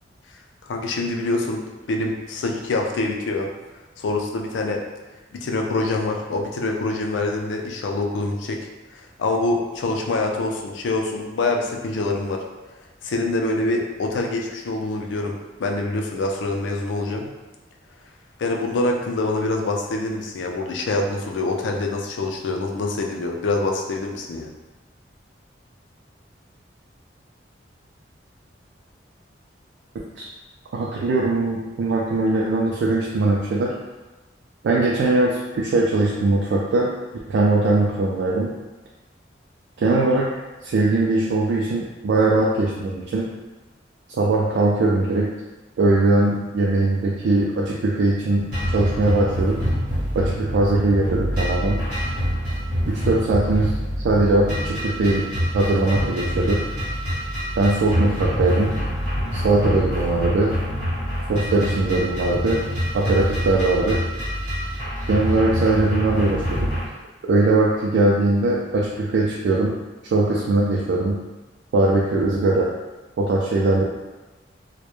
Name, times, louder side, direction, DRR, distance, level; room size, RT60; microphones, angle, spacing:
voice 1, 0.6-1.6 1.9-3.5 4.0-4.8 5.3-8.6 8.9-12.4 13.0-17.3 18.4-24.5, left 2 dB, 85° left, 1 dB, 0.4 m, -25 dB
voice 2, 30.7-33.7 34.6-36.9 37.3-38.5 39.8-40.3 40.6-43.3 44.2-45.3 45.8-49.6 50.1-51.8 52.9-53.7 54.0-55.3 55.5-56.6 57.6-58.8 59.3-60.6 61.3-62.6 62.9-64.0 65.1-66.6 67.3-69.7 70.1-71.2 71.7-72.7 73.2-73.8, right 2 dB, 80° right, -4 dB, 0.3 m, -20 dB
sound 1, 48.5-66.9, equal, 55° right, 0.9 m, -26 dB
2.1 x 2.0 x 3.0 m, 1.2 s
head